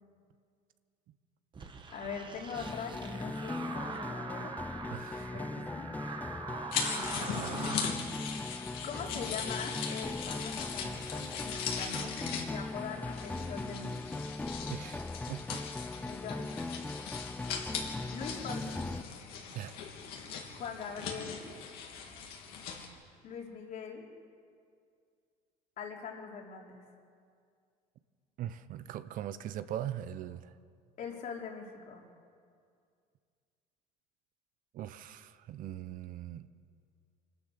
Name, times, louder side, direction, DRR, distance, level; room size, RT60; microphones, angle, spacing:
sound 1, 1.5-8.0, right 4 dB, 30° right, 1.7 m, -43 dB
voice 1, 1.9-4.5 5.1-5.9 8.8-12.2 12.5-14.3 16.1-16.8 18.1-18.9 20.5-21.4 23.2-24.1 25.8-26.8 31.0-32.1, left 5 dB, 55° left, -1 dB, 4.1 m, -42 dB
sound 2, 2.5-19.0, left 2 dB, 10° left, 0.4 m, -39 dB
voice 2, 4.9-5.3 7.4-7.8 14.7-15.6 19.5-20.0 28.4-30.5 34.7-36.5, right 11 dB, 55° right, 13 dB, 0.9 m, -41 dB
sound 3, 6.7-22.9, left 6 dB, 70° left, 3.3 m, -40 dB
25.5 x 12.5 x 8.2 m, 2.2 s
supercardioid pair, 105°, 16 cm